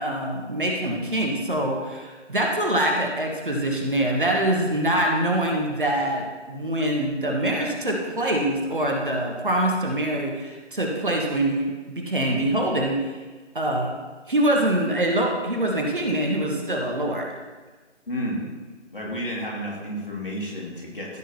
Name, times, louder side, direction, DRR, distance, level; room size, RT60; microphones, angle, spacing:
voice 1, 0.0-13.0 13.5-14.0 14.3-17.3, right 1 dB, 45° right, 0 dB, 1.5 m, -24 dB
voice 2, 18.1-18.5 18.9-21.2, equal, 45° left, -3 dB, 2.6 m, -31 dB
15.0 x 7.2 x 2.9 m, 1.3 s
figure-of-eight pair, 165°, 36 cm